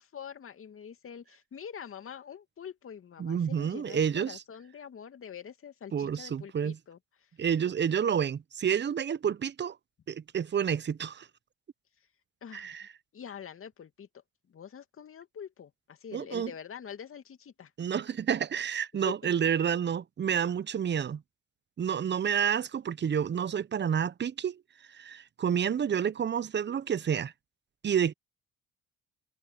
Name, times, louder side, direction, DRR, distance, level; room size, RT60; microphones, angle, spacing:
voice 1, 0.0-7.3 12.4-12.8 13.1-17.7 19.1-19.3, left 8 dB, 45° left, 2.6 m, -45 dB
voice 2, 3.2-4.4 5.9-6.8 7.4-9.8 10.1-11.3 12.5-12.8 16.1-16.5 17.8-21.2 21.8-24.6 24.9-27.3 27.8-28.1, right 8 dB, 35° right, 1.0 m, -29 dB
hypercardioid pair, 55°, 30 cm